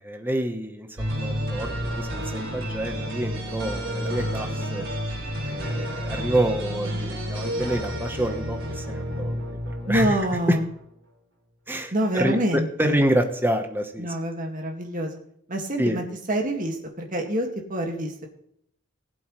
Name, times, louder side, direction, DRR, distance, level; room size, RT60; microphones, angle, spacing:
voice 1, 0.0-4.8 5.4-10.2 10.5-10.6 11.7-14.1 15.8-16.0, right 1 dB, 10° right, 6 dB, 1.1 m, -27 dB
sound 1, 1.0-10.8, equal, 65° right, 4.7 m, -30 dB
voice 2, 9.9-10.7 11.9-13.0 14.0-15.2 15.5-18.3, right 1 dB, 40° right, 2 dB, 2.1 m, -26 dB
19.5 x 7.8 x 3.2 m, 0.71 s
head